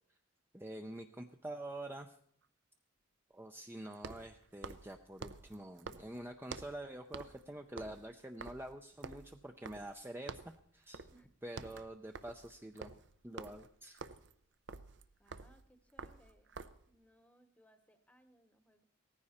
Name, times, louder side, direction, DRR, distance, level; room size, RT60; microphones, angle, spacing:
voice 1, 0.5-2.2 3.3-11.0 11.4-12.9 13.2-14.0, right 1 dB, 10° right, 5 dB, 0.5 m, -47 dB
sound 1, 0.6-0.7 3.9-6.8 7.1-7.5 7.7-10.0 10.3-10.6 10.9-11.2 11.5-16.9, right 4 dB, 60° right, 0.7 m, -49 dB
voice 2, 15.2-16.6 16.9-18.8, equal, 5° left, 10 dB, 0.9 m, -67 dB
18.0 x 14.5 x 4.3 m, 0.64 s
head